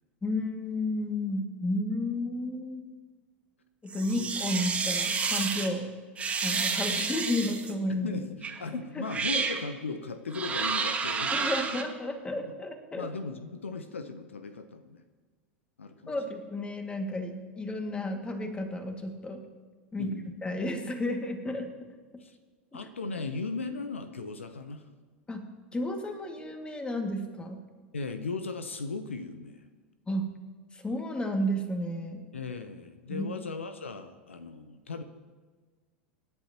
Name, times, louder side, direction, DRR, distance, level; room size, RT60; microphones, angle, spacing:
voice 1, 0.2-2.8 3.8-5.9 6.4-8.1 9.0-9.1 9.3-9.4 11.3-13.1 16.1-19.4 19.9-20.1 20.4-21.7 22.7-22.8 25.3-25.4 25.7-27.6 30.1-30.3 30.7-32.2 33.1-33.3, left 1 dB, 15° left, 4 dB, 2.2 m, -32 dB
sound 1, 3.9-5.7 6.2-7.7 8.4-8.6 9.0-9.6 10.3-11.8, right 5 dB, 20° right, 1.8 m, -30 dB
voice 2, 8.0-11.8 12.4-12.5 13.0-15.0 15.8-16.2 20.0-20.3 22.2-22.4 22.7-24.9 27.9-29.6 32.3-35.0, left 4 dB, 80° left, 9 dB, 0.9 m, -37 dB
26.5 x 10.5 x 3.0 m, 1.4 s
figure-of-eight pair, 85°, 7 cm